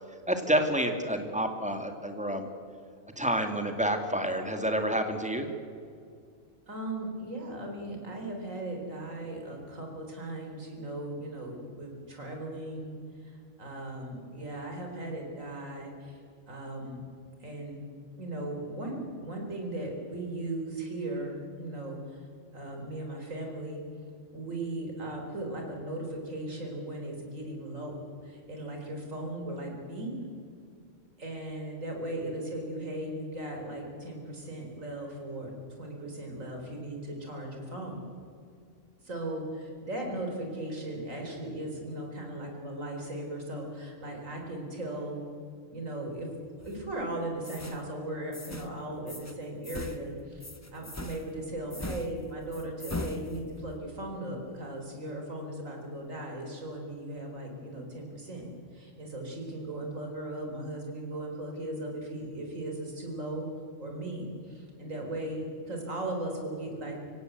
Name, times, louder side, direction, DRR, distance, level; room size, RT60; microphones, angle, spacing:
voice 1, 0.3-2.5 3.2-5.5, equal, 5° right, 5 dB, 2.1 m, -29 dB
voice 2, 6.7-16.2 16.5-17.0 17.4-17.8 18.2-22.3 22.5-23.8 24.3-30.1 31.2-38.1 39.0-45.2 45.7-46.3 46.6-58.4 58.7-63.5 63.8-67.0, right 1 dB, 90° right, 2 dB, 4.4 m, -37 dB
sound 1, 46.6-47.0 47.4-47.8 48.3-48.7 49.1-49.3 49.6-53.8, left 1 dB, 15° left, 1.0 m, -40 dB
25.0 x 16.5 x 8.0 m, 2.2 s
omnidirectional pair, 1.3 m